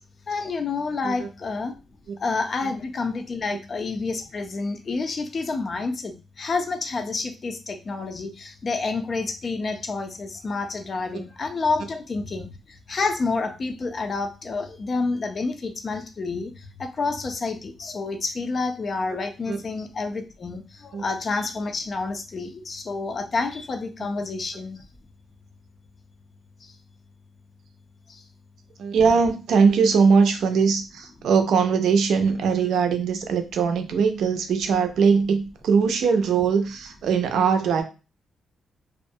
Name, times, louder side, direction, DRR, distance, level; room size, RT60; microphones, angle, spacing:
voice 1, 0.3-1.7 2.2-24.8 26.6-26.7 28.1-28.2, left 3 dB, 45° left, 6 dB, 0.4 m, -29 dB
voice 2, 28.8-37.8, right 5 dB, 80° right, 7 dB, 0.4 m, -21 dB
2.3 x 2.1 x 2.6 m, 0.32 s
cardioid pair, 100°, 0 cm